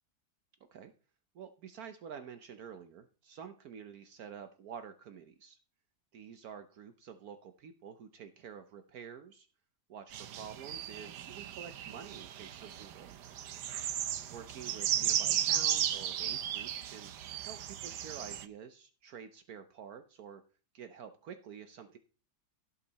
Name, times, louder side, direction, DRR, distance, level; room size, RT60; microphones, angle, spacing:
voice 1, 1.3-5.6 6.1-9.5 9.9-13.5 14.3-17.1 17.4-20.4 20.7-22.0, right 7 dB, 70° right, 9 dB, 1.2 m, -49 dB
sound 1, 10.1-18.5, right 10 dB, 85° right, 1.4 m, -35 dB
17.0 x 5.7 x 4.0 m, 0.38 s
omnidirectional pair, 1.7 m